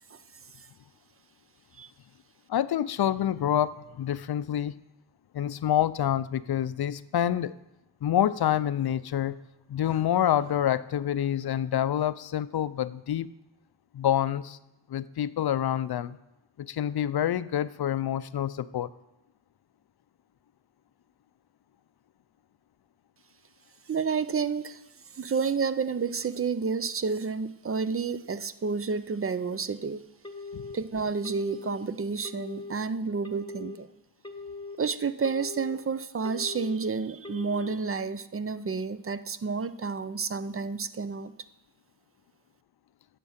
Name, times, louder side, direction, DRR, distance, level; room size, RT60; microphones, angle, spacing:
voice 1, 2.5-4.7 5.3-7.5 8.0-9.4 9.7-13.3 13.9-14.6 14.9-16.2 16.6-18.9 30.5-30.6, left 11 dB, 60° left, 15 dB, 0.5 m, -27 dB
voice 2, 23.9-24.8 25.1-30.0 30.7-33.9 34.8-41.3, right 5 dB, 30° right, 14 dB, 0.5 m, -30 dB
Telephone, 30.2-30.8 31.2-31.8 32.2-32.8 33.2-33.8 34.2-34.8 35.2-35.8 36.2-36.8 37.2-37.8, left 3 dB, 10° left, 1.2 m, -40 dB
10.0 x 6.0 x 7.2 m, 0.93 s
wide cardioid pair, 85°, 44 cm